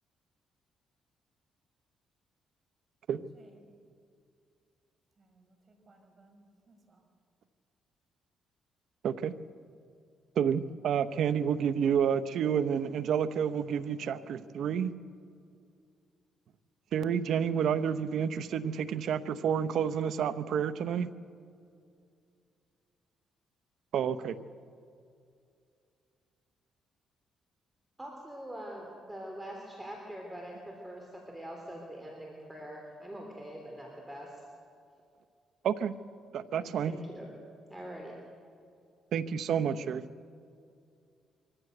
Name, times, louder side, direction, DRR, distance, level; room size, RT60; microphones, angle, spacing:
voice 1, 3.3-3.7 5.2-7.1, right 2 dB, 35° right, 3 dB, 4.9 m, -62 dB
voice 2, 10.4-14.9 16.9-21.1 23.9-24.4 35.6-35.9 36.3-37.0 39.1-40.1, right 8 dB, 70° right, 12 dB, 0.8 m, -29 dB
voice 3, 28.0-34.4 36.9-37.3 37.7-38.2, right 1 dB, 10° right, 0 dB, 3.6 m, -43 dB
24.0 x 15.0 x 8.0 m, 2.4 s
cardioid pair, 90°, 0 cm